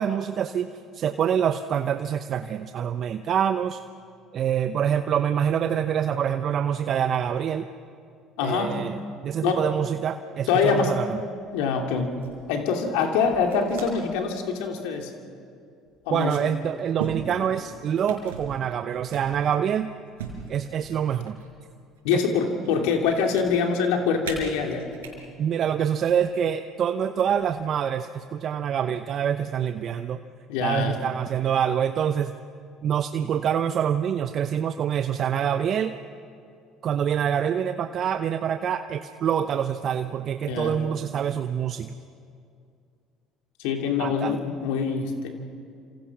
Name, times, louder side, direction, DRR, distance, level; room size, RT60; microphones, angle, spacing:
voice 1, 0.0-3.8 4.3-7.7 8.4-9.0 9.2-11.2 16.1-19.9 20.5-21.4 22.1-22.2 25.4-30.2 30.6-32.3 32.8-36.0 36.8-41.9 44.0-44.4, right 8 dB, 50° right, 9 dB, 0.8 m, -26 dB
voice 2, 8.4-8.9 9.4-9.7 10.5-11.0 11.5-12.2 12.5-15.1 16.0-16.5 22.0-24.9 30.5-31.0 40.5-40.8 43.6-45.3, left 6 dB, 75° left, 3 dB, 2.8 m, -25 dB
sound 1, 11.3-11.7 12.1-12.4 13.2-14.1 14.5-14.8 15.8-15.9 17.0-17.7 18.1-18.6 19.1-19.7 20.2-21.5 21.9-22.7 23.0-23.4 24.2-25.1 25.9-26.1 27.2-27.7, right 6 dB, 90° right, 4.9 m, -39 dB
28.5 x 27.0 x 6.1 m, 2.4 s
hypercardioid pair, 65°, 0 cm